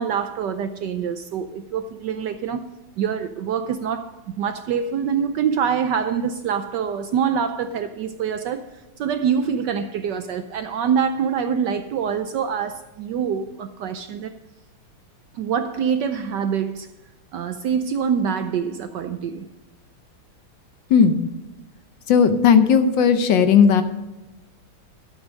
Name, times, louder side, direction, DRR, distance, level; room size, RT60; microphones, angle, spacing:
voice 1, 0.0-2.7 3.0-14.3 15.3-16.9 17.3-19.5, right 7 dB, 70° right, 1.0 m, -25 dB
voice 2, 20.9-21.3 22.1-23.8, left 6 dB, 65° left, 1.3 m, -15 dB
12.5 x 8.0 x 5.2 m
omnidirectional pair, 2.3 m